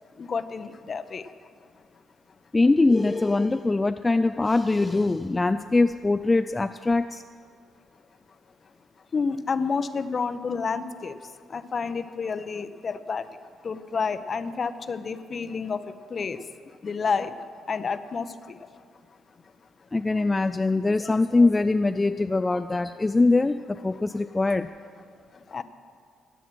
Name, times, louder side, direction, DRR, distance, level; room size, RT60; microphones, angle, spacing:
voice 1, 0.2-1.2 9.1-11.1 11.5-13.2 13.6-15.8 16.1-16.4 16.8-17.3 17.7-18.3 25.5-25.6, left 5 dB, 45° left, 12 dB, 0.8 m, -29 dB
voice 2, 2.5-7.2 19.9-24.7, left 3 dB, 25° left, 9 dB, 0.4 m, -22 dB
15.0 x 9.2 x 6.1 m, 2.1 s
supercardioid pair, 55°, 0 cm